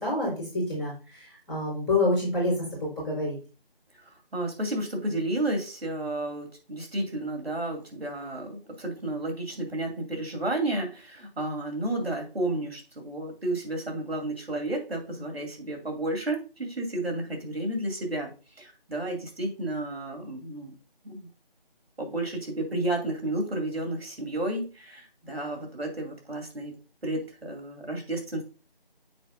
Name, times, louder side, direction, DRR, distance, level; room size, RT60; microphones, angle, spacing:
voice 1, 0.0-3.4, left 2 dB, ahead, -25 dB, 1.2 m, -28 dB
voice 2, 4.0-20.7 21.0-21.3 22.0-26.7 27.0-28.4, right 1 dB, 90° right, 2 dB, 2.7 m, -32 dB
7.8 x 5.0 x 2.6 m, 0.34 s
figure-of-eight pair, 170°, 30 cm